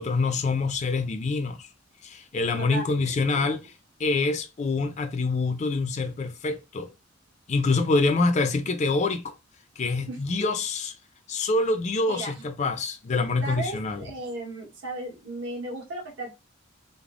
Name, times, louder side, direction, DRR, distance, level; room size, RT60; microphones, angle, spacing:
voice 1, 0.0-1.7 2.0-3.6 4.0-6.9 7.5-9.3 9.8-10.9 11.3-14.0, left 3 dB, 35° left, 0.4 m, -26 dB
voice 2, 10.1-10.5 12.1-12.3 13.4-16.3, right 2 dB, 70° right, 1.2 m, -35 dB
3.2 x 2.0 x 2.4 m
head